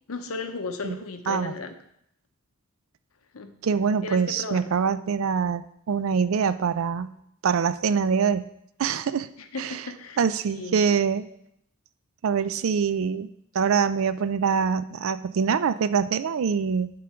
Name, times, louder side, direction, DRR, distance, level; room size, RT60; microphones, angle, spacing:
voice 1, 0.1-1.8 3.3-3.6 4.0-4.7 9.4-10.2 10.5-10.8, left 3 dB, 90° left, 8 dB, 0.8 m, -35 dB
voice 2, 3.6-7.1 7.4-8.5 8.8-9.3 9.6-9.8 10.2-11.3 12.2-13.3 13.5-16.9, right 6 dB, 70° right, 13 dB, 0.4 m, -24 dB
10.5 x 3.8 x 4.4 m, 0.74 s
head